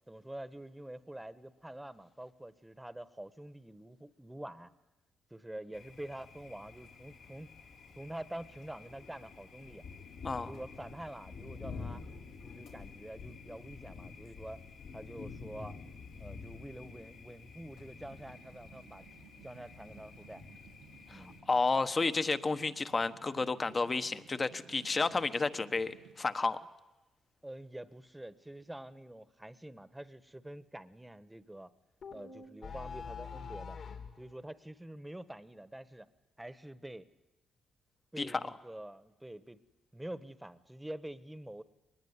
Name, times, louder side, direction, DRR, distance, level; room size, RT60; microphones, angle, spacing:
voice 1, 0.1-4.7 5.3-7.5 7.9-9.8 10.5-12.0 12.4-14.6 14.9-15.8 16.2-19.1 19.4-20.4 21.1-21.4 27.4-31.7 32.1-33.8 34.2-36.1 36.4-37.1 38.1-39.6 39.9-41.6, right 1 dB, 10° right, 14 dB, 1.3 m, -46 dB
Thunder, 5.7-21.4, left 4 dB, 85° left, 4.4 m, -49 dB
sound 1, 17.8-26.1, right 6 dB, 90° right, 2.1 m, -58 dB
voice 2, 21.1-26.6 38.2-38.4, left 3 dB, 35° left, 11 dB, 1.2 m, -31 dB
sound 2, 32.0-34.2, left 6 dB, 60° left, 3.2 m, -44 dB
23.0 x 20.5 x 9.7 m, 1.1 s
cardioid pair, 70°, 0 cm